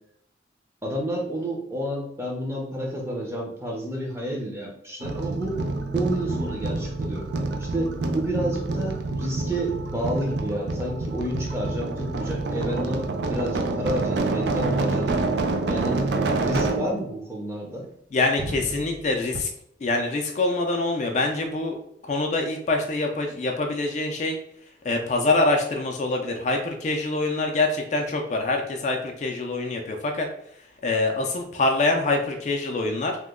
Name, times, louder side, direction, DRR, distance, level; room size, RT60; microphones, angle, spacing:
voice 1, 0.8-5.6 5.9-7.3 7.6-15.3 15.7-16.0 16.4-17.9, right 1 dB, 15° right, -1 dB, 0.6 m, -30 dB
sound 1, 5.0-17.0 18.4-19.1 19.3-19.4, right 2 dB, 75° right, 0.4 m, -27 dB
voice 2, 18.1-19.5 19.8-21.8 22.0-24.4 24.8-30.3 30.6-33.2, left 2 dB, 40° left, 3 dB, 0.4 m, -25 dB
3.0 x 2.1 x 3.6 m, 0.71 s
head